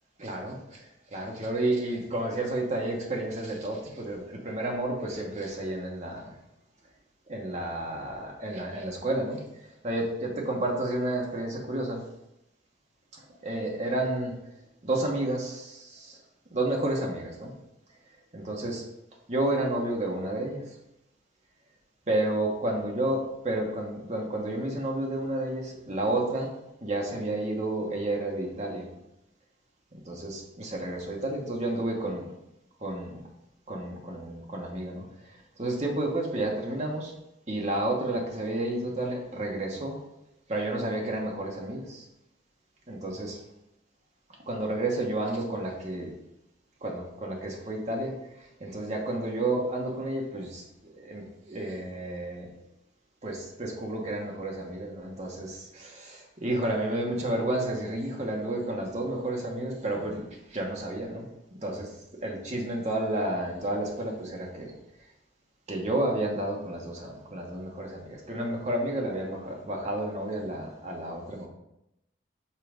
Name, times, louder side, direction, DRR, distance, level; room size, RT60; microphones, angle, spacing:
voice 1, 0.2-6.4 7.3-12.1 13.1-14.3 14.8-16.2 16.5-17.5 18.3-18.8 19.3-20.8 22.1-26.5 26.8-28.9 29.9-32.3 32.8-33.2 33.7-37.1 37.5-40.0 40.5-42.0 42.9-43.4 44.5-46.1 46.8-52.5 53.2-64.7 65.7-71.5, right 1 dB, 40° right, 0 dB, 1.2 m, -31 dB
5.6 x 3.8 x 5.1 m, 0.86 s
head